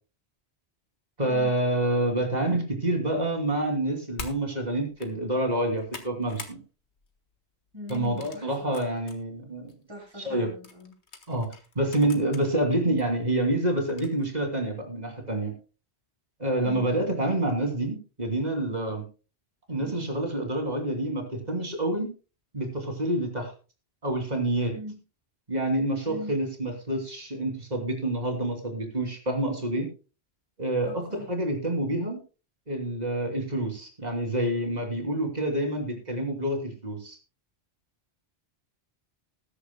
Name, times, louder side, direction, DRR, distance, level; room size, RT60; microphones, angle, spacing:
voice 1, 1.2-6.6 7.9-9.7 10.2-10.5 11.3-11.5 11.7-15.5 16.4-19.0 19.7-22.1 22.5-23.5 24.0-24.7 25.5-29.9 30.6-32.2 32.7-37.2, right 1 dB, 40° right, 3 dB, 3.0 m, -27 dB
sound 1, 4.2-4.4 4.9-5.1 5.5-6.6 7.0-7.2 7.9-9.2 9.7-9.8 10.6-12.4 13.0-13.1 13.9-14.2, left 4 dB, 90° left, 1.9 m, -43 dB
voice 2, 7.7-8.5 9.9-10.9 16.6-16.9 19.8-20.0 24.7-25.0 26.0-26.3 30.8-31.3, left 1 dB, 25° right, -2 dB, 6.0 m, -41 dB
20.0 x 10.0 x 2.2 m, 0.33 s
omnidirectional pair, 1.1 m